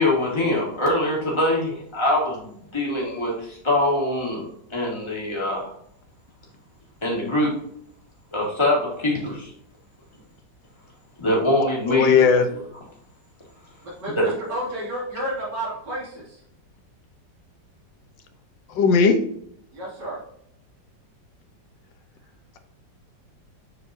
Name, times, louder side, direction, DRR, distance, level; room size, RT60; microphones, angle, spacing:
voice 1, 0.0-4.5 4.7-5.7 7.0-7.5 8.3-9.5 11.2-12.2 14.2-14.3, left 1 dB, 15° left, -3 dB, 2.1 m, -23 dB
voice 2, 11.9-12.5 18.7-19.2, left 5 dB, 85° left, 8 dB, 1.6 m, -17 dB
voice 3, 13.8-16.4 19.7-20.2, right 1 dB, 70° right, -7 dB, 3.3 m, -31 dB
7.5 x 4.6 x 2.7 m, 0.71 s
omnidirectional pair, 2.0 m